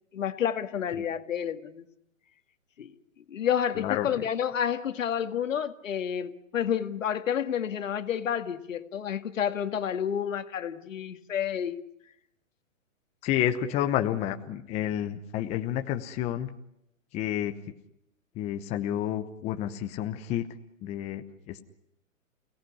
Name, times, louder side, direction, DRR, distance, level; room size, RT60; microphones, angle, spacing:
voice 1, 0.1-1.9 2.8-2.9 3.3-11.8, left 9 dB, 70° left, 9 dB, 2.1 m, -30 dB
voice 2, 3.7-4.1 13.2-16.5 17.1-17.5 18.4-20.5 20.8-21.6, left 11 dB, 15° left, 7 dB, 0.9 m, -30 dB
29.0 x 18.0 x 9.8 m, 0.81 s
hypercardioid pair, 150°, 40 cm